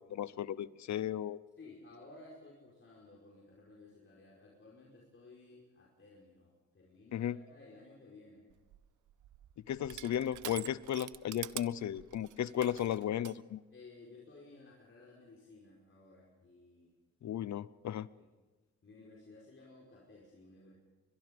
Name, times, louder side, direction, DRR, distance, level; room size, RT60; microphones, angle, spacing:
voice 1, 0.0-1.4 7.1-7.4 9.7-13.6 17.2-18.1, left 10 dB, 70° left, 19 dB, 0.7 m, -35 dB
voice 2, 1.6-8.5 13.7-16.9 18.2-18.3 18.8-20.7, left 3 dB, 45° left, -3 dB, 5.0 m, -56 dB
Crushing, 8.5-13.4, right 12 dB, 85° right, 0.7 m, -47 dB
23.5 x 22.0 x 5.3 m, 1.2 s
cardioid pair, 80°, 30 cm